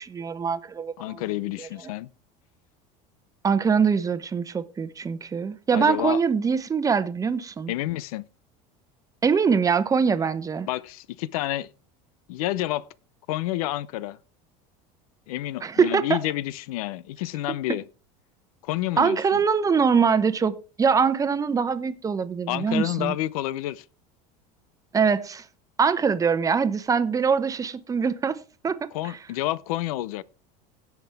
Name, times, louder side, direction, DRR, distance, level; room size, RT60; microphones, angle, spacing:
voice 1, 0.0-1.2 1.6-1.7 3.4-7.7 9.2-10.7 15.6-16.2 19.0-23.1 24.9-25.4 25.8-28.8, right 6 dB, 20° right, 0.9 m, -23 dB
voice 2, 1.0-2.1 5.7-6.2 7.7-8.3 10.7-11.7 12.3-12.9 13.3-14.2 15.3-17.8 18.6-19.4 22.5-23.8 28.9-30.2, left 15 dB, 90° left, 0.7 m, -29 dB
17.0 x 6.0 x 3.5 m
supercardioid pair, 130°, 18 cm